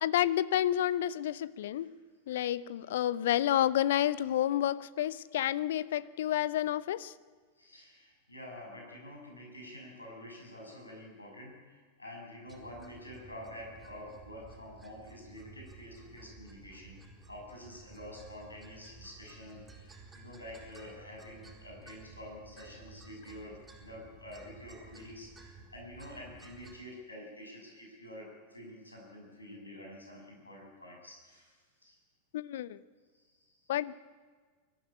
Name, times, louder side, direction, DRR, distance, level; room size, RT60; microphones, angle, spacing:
voice 1, 0.0-1.9 2.3-7.1 32.3-32.8 33.7-34.0, left 12 dB, 55° left, 18 dB, 0.7 m, -30 dB
voice 2, 7.6-17.0 17.3-32.0 33.1-33.6, left 1 dB, 80° left, -1 dB, 6.9 m, -48 dB
sound 1, 12.5-26.8, right 3 dB, 10° right, 4.3 m, -54 dB
23.5 x 14.0 x 9.9 m, 1.5 s
figure-of-eight pair, 90°, 0 cm